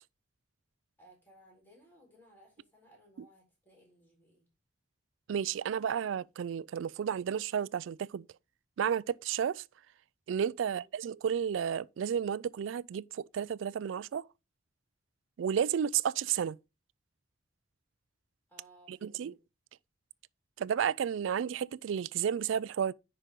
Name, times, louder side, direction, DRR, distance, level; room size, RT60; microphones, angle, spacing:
voice 1, 1.0-4.5 18.5-19.4, right 1 dB, 10° left, 4.0 m, -61 dB
voice 2, 5.3-8.2 8.8-9.6 10.3-14.3 15.4-16.6 18.9-19.3 20.6-22.9, right 8 dB, 75° right, 0.3 m, -32 dB
10.0 x 5.1 x 3.6 m
head